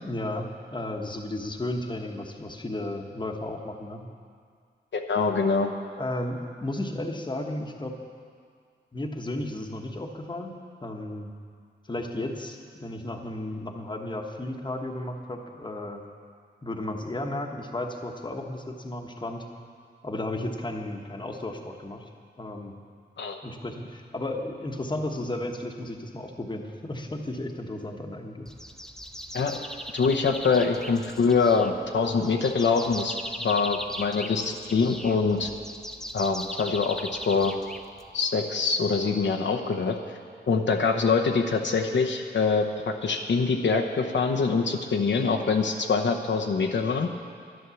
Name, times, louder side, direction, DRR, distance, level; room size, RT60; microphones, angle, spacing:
voice 1, 0.0-4.1 6.0-7.9 8.9-10.5 10.8-11.3 11.9-16.0 16.6-19.4 20.0-22.0 22.4-22.8 23.4-28.5, left 1 dB, 25° left, 3 dB, 1.2 m, -34 dB
voice 2, 4.9-5.7 23.2-23.4 29.3-29.6 29.9-35.5 36.1-37.5 38.1-40.0 40.5-47.1, left 4 dB, 70° left, 3 dB, 0.9 m, -24 dB
sound 1, 28.5-38.3, equal, 5° left, 0.7 m, -39 dB
11.0 x 11.0 x 7.0 m, 2.1 s
wide cardioid pair, 115°, 19 cm